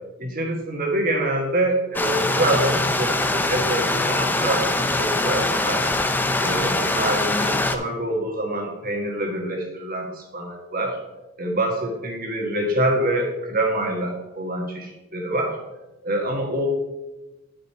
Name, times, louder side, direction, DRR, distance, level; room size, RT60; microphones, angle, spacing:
voice 1, 0.2-5.9 6.4-11.0 11.4-15.6 16.0-16.7, right 1 dB, 45° right, 1 dB, 1.7 m, -26 dB
Stream, 1.9-7.7, left 2 dB, 10° left, 0.5 m, -23 dB
11.0 x 5.3 x 4.3 m, 1.1 s
head